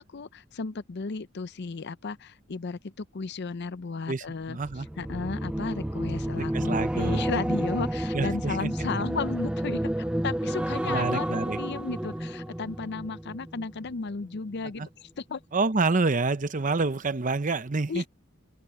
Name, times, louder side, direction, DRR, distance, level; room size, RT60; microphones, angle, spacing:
voice 1, 0.0-4.6 5.0-15.4 17.9-18.1, left 4 dB, 55° left, 0.6 m, -34 dB
voice 2, 4.1-4.9 6.4-7.3 8.1-8.7 10.8-11.6 14.8-14.9 15.5-18.1, right 3 dB, 40° right, 0.8 m, -28 dB
sound 1, 4.6-14.0 14.3-14.6, right 1 dB, 5° right, 0.3 m, -30 dB
open air
head